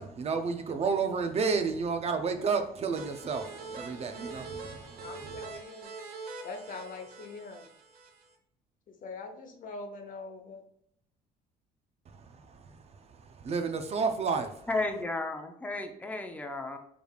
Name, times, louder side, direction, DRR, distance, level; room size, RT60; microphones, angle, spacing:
voice 1, 0.0-5.1 12.1-12.7 13.2-14.5, right 5 dB, 40° right, 6 dB, 0.5 m, -31 dB
sound 1, 2.9-8.3, right 4 dB, 60° right, 1.0 m, -44 dB
voice 2, 5.0-5.9 6.4-7.7 8.9-10.6, left 3 dB, 55° left, 4 dB, 0.9 m, -43 dB
voice 3, 14.7-16.8, left 2 dB, 10° left, 4 dB, 0.6 m, -33 dB
4.8 x 3.4 x 2.4 m, 0.72 s
cardioid pair, 110°, 17 cm